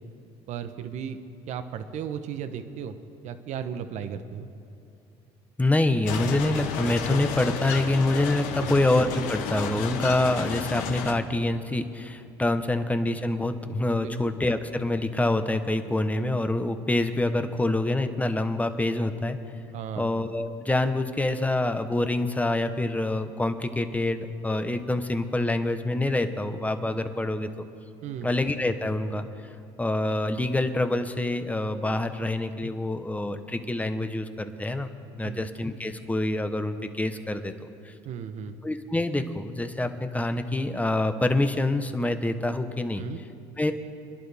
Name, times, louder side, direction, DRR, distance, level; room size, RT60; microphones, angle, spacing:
voice 1, 0.5-1.2 1.5-2.9 3.2-4.5 8.6-8.8 14.0-14.3 19.7-20.1 28.0-28.3 32.2-32.3 35.2-35.4 38.0-38.5 43.0-43.2, right 8 dB, 60° right, 9 dB, 1.0 m, -35 dB
voice 2, 5.6-19.4 20.0-27.7 28.2-29.2 29.8-34.9 35.2-37.9 38.6-43.0 43.6-43.7, left 2 dB, 10° left, 8 dB, 1.1 m, -26 dB
sound 1, 6.1-11.1, left 7 dB, 75° left, 1.2 m, -32 dB
26.5 x 11.0 x 3.5 m, 2.7 s
supercardioid pair, 80°, 13 cm